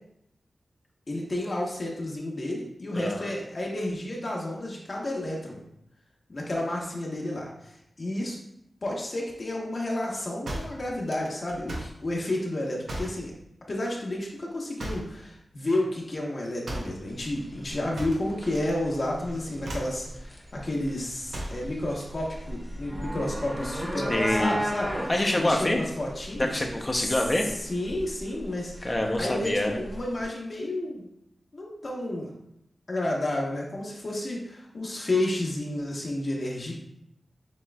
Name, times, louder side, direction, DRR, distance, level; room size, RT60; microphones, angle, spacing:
voice 1, 1.1-5.6 6.3-8.4 8.8-13.3 13.7-25.1 25.4-26.6 27.0-27.1 27.6-28.9 29.2-31.0 31.5-32.3 32.9-36.7, left 1 dB, 50° left, -2 dB, 1.0 m, -31 dB
voice 2, 2.9-3.3 24.1-24.6 25.1-25.8 26.4-27.5 28.8-29.8, left 1 dB, 25° left, 2 dB, 0.7 m, -26 dB
sound 1, 10.5-12.0 12.9-13.2 14.8-15.2 16.6-17.0 18.0-18.7 19.0-19.3 19.6-20.0 21.3-21.7, right 1 dB, 85° right, 0.8 m, -36 dB
sound 2, 17.1-30.2, equal, 10° right, 0.9 m, -36 dB
7.3 x 3.0 x 2.3 m, 0.76 s
wide cardioid pair, 95°, 0 cm